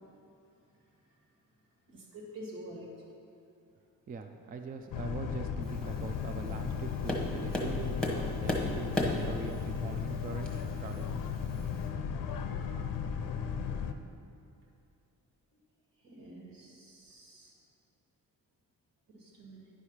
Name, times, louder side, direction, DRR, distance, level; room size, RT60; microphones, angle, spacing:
voice 1, 1.9-2.9 16.0-17.5 19.1-19.7, right 1 dB, 75° right, -2 dB, 2.1 m, -48 dB
voice 2, 4.1-11.4, right 4 dB, 25° right, 6 dB, 0.4 m, -42 dB
Boat Water vehicle, 4.9-13.9, left 7 dB, 70° left, 0.6 m, -35 dB
Tap, 5.6-11.9, left 1 dB, ahead, 1.0 m, -38 dB
9.9 x 4.9 x 5.6 m, 2.6 s
cardioid pair, 135°, 35 cm